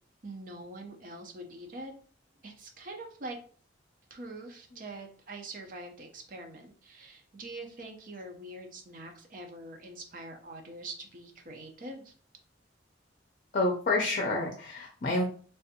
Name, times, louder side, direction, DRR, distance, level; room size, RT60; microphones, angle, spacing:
voice 1, 0.2-1.9 2.4-3.4 4.1-12.1, right 2 dB, 50° right, 3 dB, 0.6 m, -44 dB
voice 2, 13.5-15.2, left 2 dB, 50° left, 1 dB, 0.6 m, -28 dB
3.4 x 2.5 x 2.8 m, 0.43 s
head